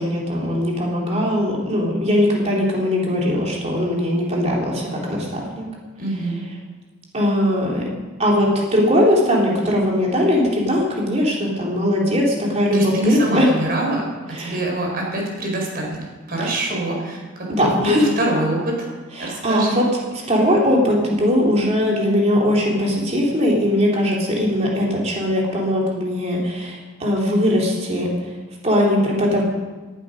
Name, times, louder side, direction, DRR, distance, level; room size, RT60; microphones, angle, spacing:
voice 1, 0.0-5.6 7.1-7.8 8.2-13.5 14.3-14.6 16.4-16.5 17.5-18.1 19.2-19.8 20.3-28.1 28.6-29.4, equal, 35° right, -3 dB, 3.7 m, -20 dB
voice 2, 6.0-6.4 12.7-16.0 16.3-18.7 19.2-19.8, right 1 dB, 50° right, 0 dB, 4.9 m, -24 dB
18.0 x 12.0 x 5.2 m, 1.3 s
head